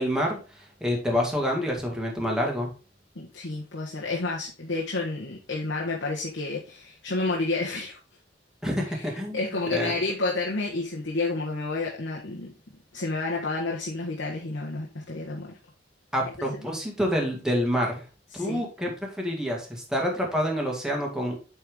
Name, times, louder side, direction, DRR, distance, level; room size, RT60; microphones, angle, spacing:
voice 1, 0.0-2.7 8.6-9.4 9.7-9.9 16.1-18.0 18.4-21.4, equal, 5° right, 2.0 m, -27 dB
voice 2, 3.1-8.0 8.8-12.5 12.9-15.6 16.5-16.6 18.3-18.6, left 3 dB, 85° left, 1.5 m, -30 dB
8.6 x 4.6 x 3.6 m
head